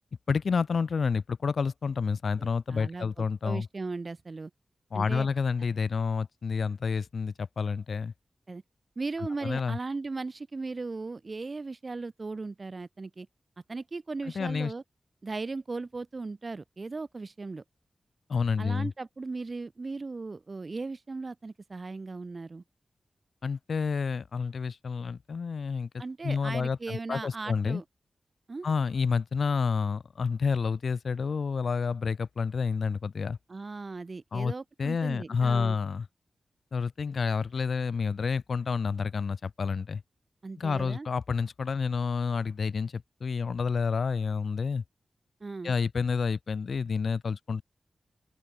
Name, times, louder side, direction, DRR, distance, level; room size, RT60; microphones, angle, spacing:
voice 1, 0.3-3.7 4.9-8.1 9.4-9.8 14.4-14.7 18.3-18.9 23.4-25.9 26.2-27.8 28.6-33.4 34.3-34.5 34.8-36.1 36.7-40.0 40.6-44.8 45.6-47.6, left 5 dB, 65° left, 2.2 m, -29 dB
voice 2, 2.4-4.5 4.9-5.3 8.5-8.6 9.0-13.3 13.7-14.8 15.2-17.6 18.6-22.6 26.0-27.8 28.5-28.7 33.5-35.8 40.4-41.1 45.4-45.7, right 3 dB, 40° right, 5.4 m, -37 dB
open air
wide cardioid pair, 120°, 0 cm